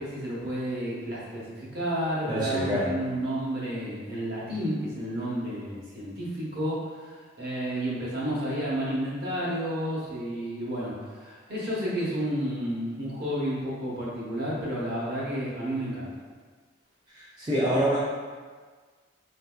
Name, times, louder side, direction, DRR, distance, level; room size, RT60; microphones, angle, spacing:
voice 1, 0.0-16.2, equal, 50° right, -6 dB, 0.9 m, -31 dB
voice 2, 2.3-2.9 17.1-18.0, equal, 20° right, -10 dB, 0.4 m, -26 dB
3.6 x 2.6 x 2.2 m, 1.5 s
head